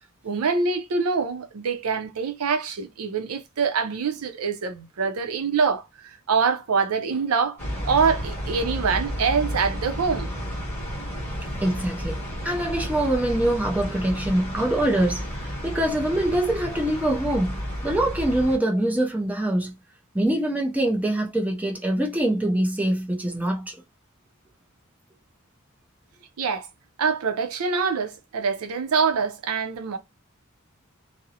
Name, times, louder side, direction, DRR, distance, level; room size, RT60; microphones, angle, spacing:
voice 1, 0.2-5.9 6.3-7.6 7.8-10.3 26.4-26.7 27.0-30.0, right 5 dB, 85° right, 0.5 m, -24 dB
sound 1, 7.6-18.6, equal, 10° left, 1.1 m, -32 dB
voice 2, 11.6-12.2 12.4-19.8 20.1-23.7, right 1 dB, 5° right, 0.5 m, -24 dB
2.5 x 2.0 x 2.7 m
head